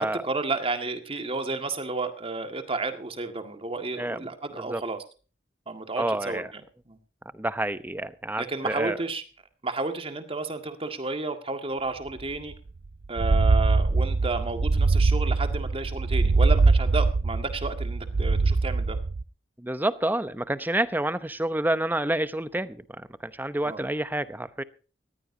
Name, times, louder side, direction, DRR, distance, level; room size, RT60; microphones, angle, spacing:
voice 1, 0.0-5.0 5.7-6.4 6.9-7.0 8.4-9.2 9.6-12.5 13.1-19.0 23.7-23.8, right 3 dB, 30° right, 7 dB, 1.9 m, -32 dB
voice 2, 6.0-6.5 7.3-9.0 19.6-24.6, right 1 dB, 10° right, 14 dB, 0.8 m, -28 dB
sound 1, 12.2-12.3 12.5-12.6 13.0-19.2, right 3 dB, 60° right, 0.5 m, -22 dB
19.5 x 15.0 x 2.8 m, 0.36 s
head